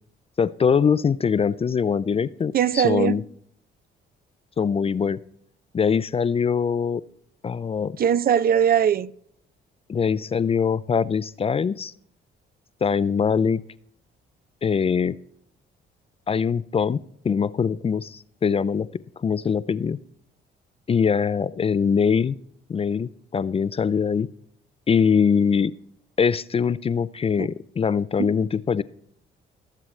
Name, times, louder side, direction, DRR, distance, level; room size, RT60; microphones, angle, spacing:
voice 1, 0.4-3.2 4.6-5.2 5.7-7.0 7.4-8.0 9.9-11.9 12.8-13.6 14.6-15.2 16.3-18.9 19.2-20.0 20.9-22.4 22.7-24.3 24.9-25.7 26.2-28.8, left 6 dB, 30° left, 0.4 m, -22 dB
voice 2, 2.5-3.2 8.0-9.1 27.4-27.5 28.2-28.3, right 8 dB, 50° right, 0.5 m, -20 dB
20.5 x 7.6 x 3.2 m
cardioid pair, 90°, 20 cm